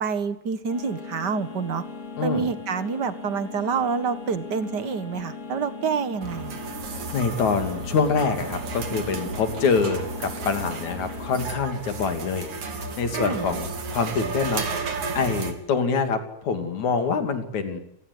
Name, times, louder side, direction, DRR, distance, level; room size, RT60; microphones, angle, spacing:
voice 1, 0.0-1.8 2.2-6.6 13.1-13.5, right 5 dB, 40° right, 12 dB, 1.8 m, -27 dB
sound 1, 0.7-11.5, left 4 dB, 65° left, 5.6 m, -39 dB
voice 2, 2.2-2.5 7.1-17.8, left 5 dB, 80° left, 7 dB, 4.2 m, -26 dB
sound 2, 6.2-15.5, right 4 dB, 85° right, 4.5 m, -33 dB
29.0 x 18.0 x 9.7 m, 0.75 s
omnidirectional pair, 3.3 m